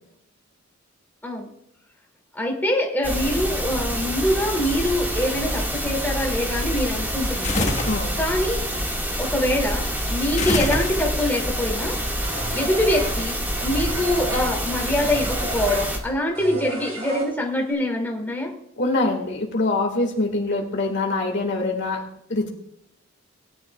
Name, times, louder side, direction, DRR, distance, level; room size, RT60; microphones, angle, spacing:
voice 1, 2.3-7.7 8.2-8.6 9.2-12.0 12.5-18.5, left 1 dB, 10° left, -1 dB, 2.6 m, -24 dB
sound 1, 3.0-16.0, equal, 10° right, 1.9 m, -27 dB
sound 2, 7.4-8.1 10.4-11.3, left 2 dB, 35° left, 1.4 m, -25 dB
voice 2, 7.8-8.2 18.8-22.5, left 2 dB, 60° left, 2 dB, 2.0 m, -24 dB
sound 3, 12.2-17.7, right 2 dB, 70° right, 5.3 m, -33 dB
19.5 x 10.5 x 2.4 m, 0.77 s
head